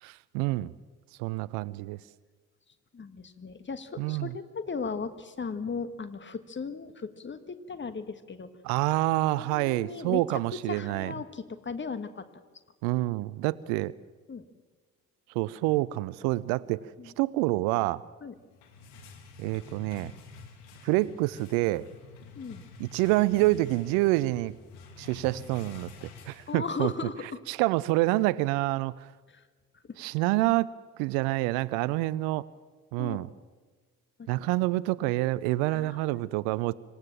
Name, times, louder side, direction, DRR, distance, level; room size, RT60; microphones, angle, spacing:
voice 1, 0.0-0.7 1.2-2.0 4.0-4.3 8.6-11.1 12.8-13.9 15.3-18.0 19.4-20.1 20.8-21.9 22.8-24.5 25.0-26.9 27.5-29.1 30.0-30.7 31.0-32.5 32.9-33.3 34.3-36.7, right 19 dB, 60° right, 21 dB, 0.6 m, -27 dB
voice 2, 2.9-8.5 9.4-10.4 10.7-12.2 14.3-14.4 17.0-17.1 18.2-18.3 22.4-22.6 26.5-27.4 29.3-29.4 29.9-30.0 33.0-33.3 34.2-34.3 35.7-36.3, left 5 dB, 25° left, 11 dB, 1.6 m, -37 dB
sound 1, 18.4-27.0, left 4 dB, 65° left, 2.6 m, -49 dB
26.0 x 15.0 x 7.4 m, 1.4 s
figure-of-eight pair, 50°, 42 cm